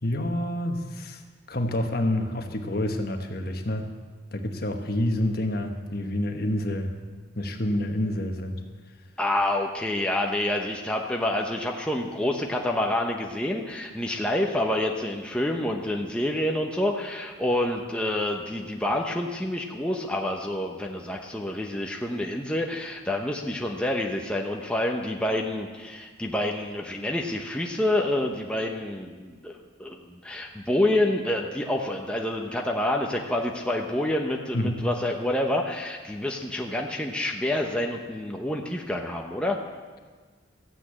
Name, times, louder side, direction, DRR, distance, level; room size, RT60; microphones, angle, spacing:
voice 1, 0.0-1.2 1.5-3.9 4.3-6.9 7.3-8.6 34.5-34.9, left 1 dB, 50° left, 5 dB, 1.3 m, -28 dB
voice 2, 9.2-39.6, left 1 dB, 5° left, 0 dB, 0.9 m, -28 dB
14.0 x 9.4 x 8.3 m, 1.4 s
head